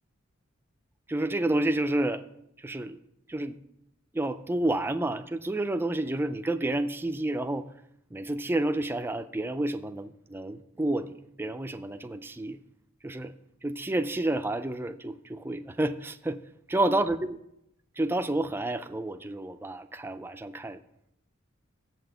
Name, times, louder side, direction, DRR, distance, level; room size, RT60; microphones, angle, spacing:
voice 1, 1.1-2.2 2.6-3.0 3.3-3.6 4.1-7.7 8.1-12.6 13.0-13.3 13.6-16.4 16.7-17.4 18.0-20.8, right 1 dB, 10° right, 9 dB, 0.3 m, -30 dB
7.5 x 6.0 x 6.6 m, 0.81 s
head